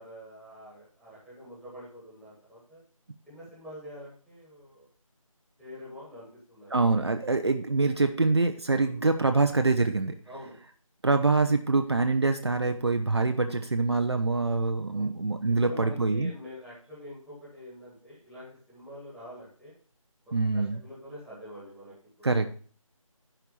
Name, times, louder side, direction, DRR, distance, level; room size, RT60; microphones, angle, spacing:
voice 1, 0.0-2.8 3.3-4.9 5.6-6.7 8.8-9.0 10.3-10.5 13.4-13.6 14.9-15.1 15.6-19.7 20.5-22.4, equal, ahead, -8 dB, 1.9 m, -46 dB
voice 2, 6.7-10.1 11.0-16.3 20.3-20.8 22.2-22.5, right 3 dB, 50° right, 6 dB, 0.8 m, -25 dB
11.0 x 4.6 x 6.7 m, 0.44 s
figure-of-eight pair, 165°, 18 cm